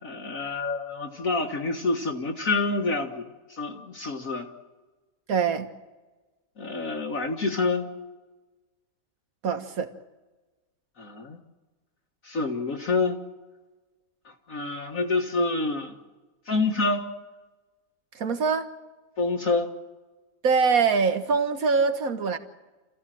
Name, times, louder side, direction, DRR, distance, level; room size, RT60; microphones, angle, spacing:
voice 1, 0.0-4.5 6.6-7.9 11.0-11.4 12.2-13.2 14.3-15.9 16.5-17.0 19.2-19.7, left 3 dB, 50° left, 2 dB, 1.9 m, -27 dB
voice 2, 5.3-5.7 9.4-9.9 18.1-18.7 20.4-22.4, right 5 dB, 55° right, 8 dB, 1.8 m, -23 dB
28.0 x 15.5 x 7.7 m, 1.2 s
omnidirectional pair, 1.9 m